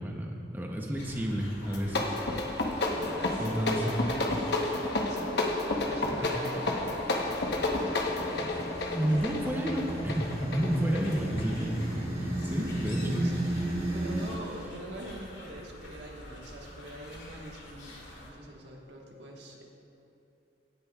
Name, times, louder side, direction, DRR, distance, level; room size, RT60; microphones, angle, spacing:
voice 1, 0.0-2.2 3.4-4.0 6.1-6.4 8.3-13.2, equal, 10° right, 0 dB, 0.7 m, -31 dB
sound 1, 0.9-18.3, left 1 dB, 85° left, 2.3 m, -48 dB
sound 2, 1.6-11.9, left 2 dB, 65° left, 1.0 m, -31 dB
voice 2, 2.8-3.5 3.7-9.0 13.0-13.5 13.9-19.6, right 1 dB, 75° right, -1 dB, 1.5 m, -44 dB
sound 3, 7.3-14.3, right 1 dB, 30° right, 1.7 m, -35 dB
16.0 x 10.0 x 2.4 m, 2.9 s
head